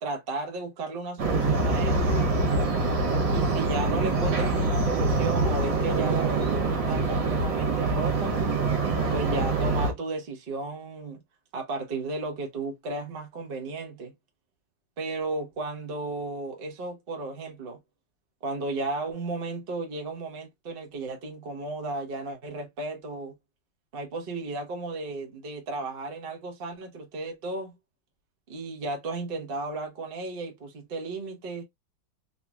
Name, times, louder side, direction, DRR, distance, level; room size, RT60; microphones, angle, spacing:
voice 1, 0.0-2.3 3.3-8.4 9.1-11.2 11.5-14.1 15.0-17.8 18.4-23.4 23.9-27.7 28.5-31.6, right 3 dB, 35° right, 1.0 m, -34 dB
sound 1, 1.2-9.9, right 3 dB, 65° right, 1.8 m, -25 dB
4.1 x 2.9 x 2.3 m
omnidirectional pair, 2.3 m